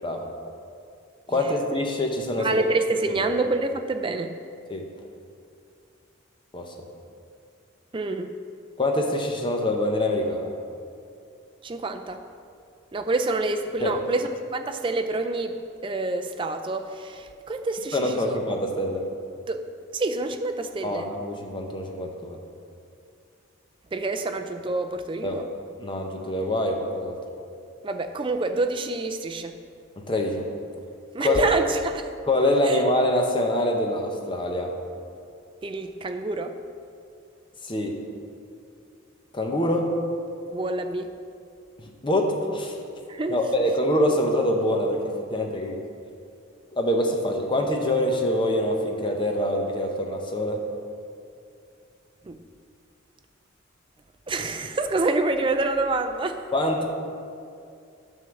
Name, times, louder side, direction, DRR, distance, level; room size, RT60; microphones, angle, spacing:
voice 1, 1.3-2.6 4.7-4.8 6.5-6.7 8.8-10.5 13.8-14.0 17.9-19.0 20.8-22.4 25.2-25.4 25.8-27.2 30.1-30.4 31.2-31.5 32.3-34.7 37.6-38.0 39.3-39.9 42.0-42.8 43.3-45.0 45.3-45.8 46.7-50.6 56.5-56.8, left 1 dB, 25° left, 2 dB, 0.8 m, -25 dB
voice 2, 2.4-4.4 7.9-8.3 11.6-12.2 12.9-15.6 15.8-18.4 19.5-19.6 19.9-21.1 23.9-25.4 27.8-29.6 31.1-32.0 32.6-32.8 35.6-36.6 40.5-41.1 43.1-43.4 52.2-52.4 54.3-56.4, right 2 dB, 25° right, 7 dB, 0.4 m, -27 dB
9.5 x 3.7 x 7.0 m, 2.4 s
head